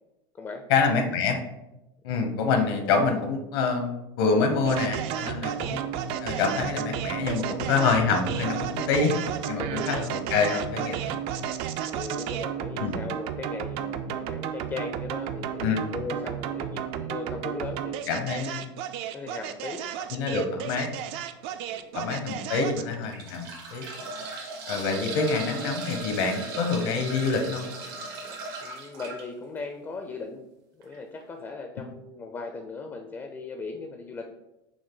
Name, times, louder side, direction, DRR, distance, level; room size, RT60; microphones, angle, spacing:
voice 1, 0.7-1.4 2.0-5.8 6.2-9.2 9.4-11.2 12.8-13.0 15.6-15.9 18.1-18.7 20.1-20.9 21.9-23.8 24.7-27.7, left 4 dB, 75° left, 4 dB, 0.9 m, -26 dB
sound 1, 4.6-23.0, right 9 dB, 50° right, 0.4 m, -32 dB
voice 2, 9.6-9.9 11.9-18.5 19.1-20.2 21.5-21.8 24.0-24.2 25.0-25.2 28.6-30.4 30.7-34.3, left 4 dB, 20° left, 5 dB, 0.4 m, -38 dB
sound 2, 20.9-21.1 21.8-21.9 22.8-29.2 30.8-30.9 31.2-31.3, right 3 dB, 85° right, 1.4 m, -37 dB
6.1 x 2.2 x 3.8 m, 0.94 s
supercardioid pair, 130°, 12 cm